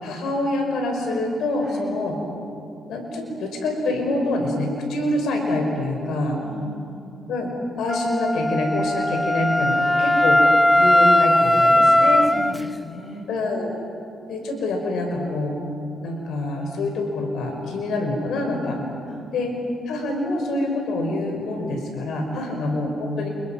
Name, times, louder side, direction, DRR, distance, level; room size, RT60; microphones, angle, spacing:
voice 1, 0.0-2.2 2.9-6.4 7.3-7.5 7.8-10.4 10.7-12.3 13.3-13.7 14.3-15.6 16.0-18.8 19.3-19.5 19.9-23.3, left 2 dB, 75° left, 2 dB, 5.4 m, -26 dB
voice 2, 1.6-2.0 6.4-7.2 11.9-13.2 19.1-19.4 22.3-22.6, equal, 30° left, 1 dB, 7.4 m, -40 dB
Wind instrument woodwind instrument, 7.9-12.6, left 1 dB, 10° left, 0.6 m, -18 dB
29.5 x 28.0 x 6.0 m, 2.6 s
cardioid pair, 90°, 0 cm